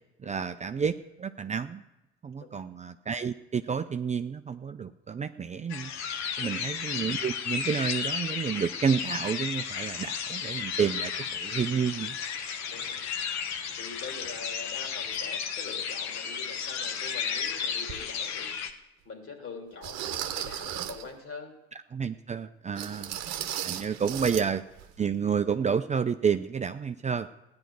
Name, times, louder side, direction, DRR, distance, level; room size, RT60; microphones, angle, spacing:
voice 1, 0.2-1.8 2.2-5.9 6.4-12.2 21.9-23.2 23.6-24.6 25.0-27.3, right 6 dB, 25° right, 9 dB, 0.5 m, -30 dB
sound 1, 5.7-18.7, left 7 dB, 60° left, 1.1 m, -33 dB
voice 2, 6.4-6.7 12.7-13.0 13.7-18.6 19.0-21.5 22.9-23.2 24.0-24.5, left 4 dB, 45° left, 3 dB, 3.1 m, -44 dB
sound 2, 17.9-18.0 18.7-18.8 19.8-21.1 22.8-24.5 24.7-24.9 25.4-25.5, right 11 dB, 60° right, 1.0 m, -35 dB
16.0 x 10.5 x 4.7 m, 0.95 s
hypercardioid pair, 60°, 31 cm